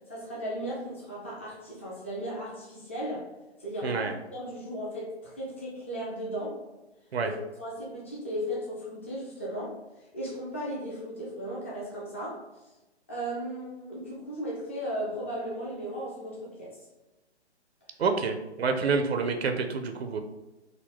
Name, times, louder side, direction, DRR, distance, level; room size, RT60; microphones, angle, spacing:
voice 1, 0.1-3.3 3.6-6.6 7.2-9.8 10.1-12.4 13.1-16.8, equal, 15° left, -5 dB, 0.3 m, -36 dB
voice 2, 3.8-4.1 7.1-7.3 18.0-20.2, right 5 dB, 65° right, 6 dB, 0.5 m, -28 dB
3.7 x 2.2 x 3.5 m, 1.1 s
figure-of-eight pair, 130°, 34 cm